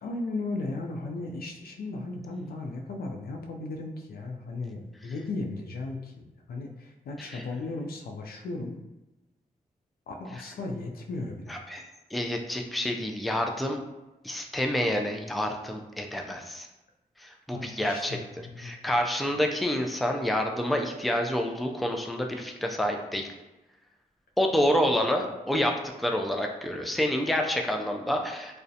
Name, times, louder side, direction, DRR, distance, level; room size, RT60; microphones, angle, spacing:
voice 1, 0.0-8.8 10.1-11.6 17.5-18.7, left 2 dB, 80° left, 2 dB, 0.4 m, -36 dB
voice 2, 11.5-13.8 14.2-16.7 17.2-18.2 18.6-23.3 24.4-28.6, left 1 dB, ahead, 2 dB, 0.3 m, -28 dB
2.3 x 2.1 x 2.6 m, 1.0 s
cardioid pair, 60°, 15 cm